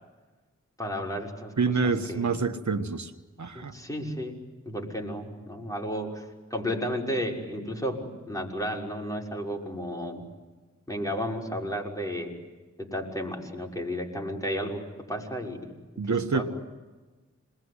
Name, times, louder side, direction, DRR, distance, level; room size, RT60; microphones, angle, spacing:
voice 1, 0.8-1.5 1.8-2.2 3.5-4.3 4.6-10.2 10.9-12.3 12.8-15.7 16.3-16.5, equal, 10° left, 0 dB, 6.1 m, -33 dB
voice 2, 1.6-3.1 3.4-3.7 16.0-16.5, right 4 dB, 75° right, 7 dB, 1.4 m, -27 dB
27.5 x 21.5 x 9.8 m, 1.3 s
cardioid pair, 45°, 29 cm